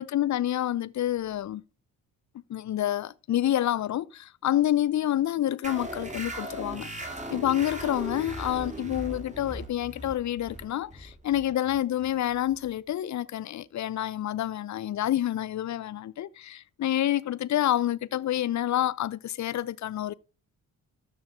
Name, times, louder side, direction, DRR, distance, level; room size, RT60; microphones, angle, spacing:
voice 1, 0.0-1.6 2.5-6.9 7.3-20.1, left 12 dB, 40° left, 0.7 m, -28 dB
sound 1, 5.6-12.8, right 1 dB, 15° right, 3.6 m, -39 dB
12.5 x 6.3 x 5.0 m
figure-of-eight pair, 40°, 44 cm